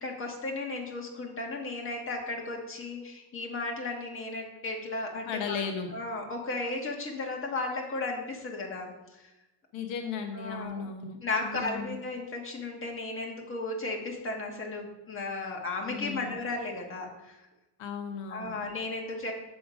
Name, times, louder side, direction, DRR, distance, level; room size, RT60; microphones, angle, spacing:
voice 1, 0.0-5.6 5.9-9.2 10.3-10.9 11.2-17.4 18.3-19.3, left 3 dB, 25° left, 1 dB, 1.4 m, -35 dB
voice 2, 5.3-5.9 9.7-11.2 11.4-12.0 15.9-16.4 17.8-18.6, left 5 dB, 70° left, 4 dB, 1.1 m, -36 dB
7.1 x 6.9 x 5.1 m, 1.0 s
cardioid pair, 165°, 48 cm